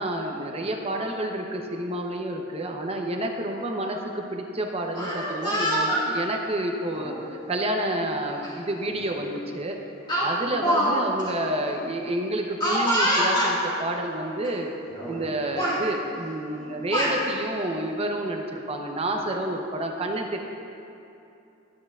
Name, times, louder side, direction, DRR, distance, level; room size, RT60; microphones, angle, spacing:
voice 1, 0.0-9.8 10.2-14.7 15.1-20.4, right 1 dB, 30° right, 2 dB, 0.7 m, -29 dB
Speech, 4.8-6.0 6.9-7.2 8.4-8.5 8.9-9.1 10.1-10.9 11.2-11.3 12.6-13.5 14.4-14.5 14.9-15.3 15.6-15.8 16.6-17.2, equal, 20° left, 1.8 m, -25 dB
12.0 x 9.0 x 2.4 m, 2.7 s
head